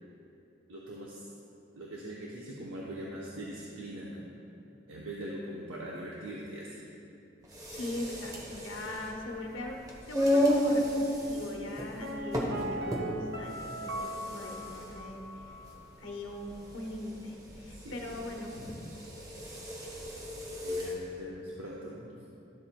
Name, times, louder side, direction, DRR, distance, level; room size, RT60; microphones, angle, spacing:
voice 1, 0.7-1.3 1.7-4.3 4.9-6.9 17.7-18.2 20.6-22.1, right 1 dB, 85° right, -5 dB, 0.9 m, -42 dB
sound 1, 7.4-21.0, equal, 20° right, 0.9 m, -33 dB
voice 2, 7.7-9.8 10.1-11.0 11.3-15.2 16.0-18.8, left 1 dB, 75° left, 1 dB, 1.0 m, -40 dB
Piano, 12.0-15.8 16.0-16.1, equal, 55° right, 0.7 m, -40 dB
12.0 x 7.5 x 2.2 m, 2.7 s
head